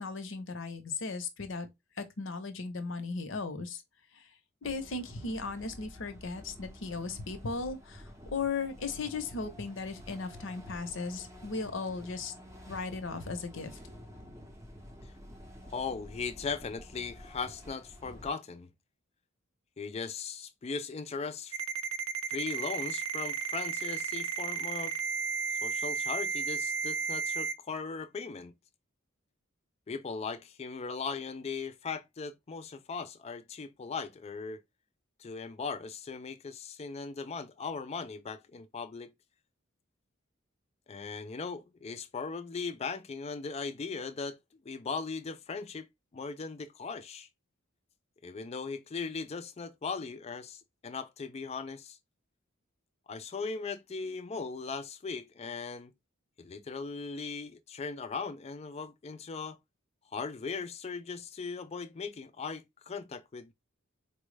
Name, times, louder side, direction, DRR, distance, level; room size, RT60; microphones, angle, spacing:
voice 1, 0.0-1.7 2.0-3.8 4.6-8.0 8.3-12.3 12.7-13.7, left 4 dB, 65° left, 0.7 m, -36 dB
sound 1, 4.6-18.3, equal, 15° right, 0.6 m, -50 dB
voice 2, 15.7-18.7 19.8-21.6 22.3-25.0 25.6-28.5 29.9-34.6 35.2-39.1 40.9-44.4 44.7-45.9 46.1-47.3 48.2-52.0 53.1-55.9 56.4-59.6 60.1-63.5, left 4 dB, 30° left, 0.4 m, -38 dB
Ringtone, 21.5-27.5, right 6 dB, 80° right, 0.5 m, -33 dB
4.3 x 2.0 x 3.1 m
head